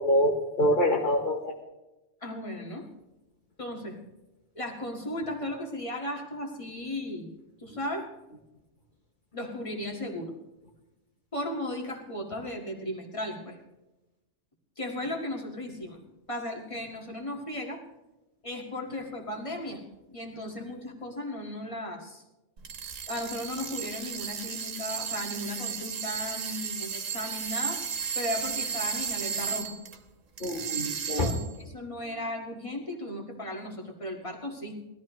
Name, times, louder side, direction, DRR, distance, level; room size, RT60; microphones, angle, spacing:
voice 1, 0.0-1.5 30.4-31.3, equal, 40° left, 1 dB, 1.3 m, -25 dB
voice 2, 2.2-2.9 3.6-4.0 4.5-7.3 7.6-8.1 9.3-10.3 11.3-13.6 14.8-16.0 16.3-17.8 18.4-19.8 20.1-22.2 23.1-29.8 31.2-34.8, left 1 dB, 25° left, 1 dB, 1.9 m, -36 dB
sound 1, 22.6-30.0 30.4-31.6, right 7 dB, 80° right, 1.6 m, -34 dB
19.0 x 13.5 x 3.1 m, 1.0 s
omnidirectional pair, 1.3 m